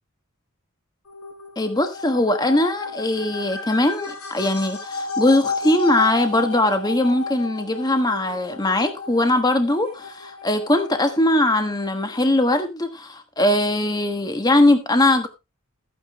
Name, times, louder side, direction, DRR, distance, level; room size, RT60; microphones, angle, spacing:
sound 1, 1.1-12.3, left 4 dB, 80° left, 5.7 m, -33 dB
voice 1, 1.6-15.3, left 1 dB, 20° left, 1.3 m, -20 dB
14.0 x 9.3 x 3.1 m
head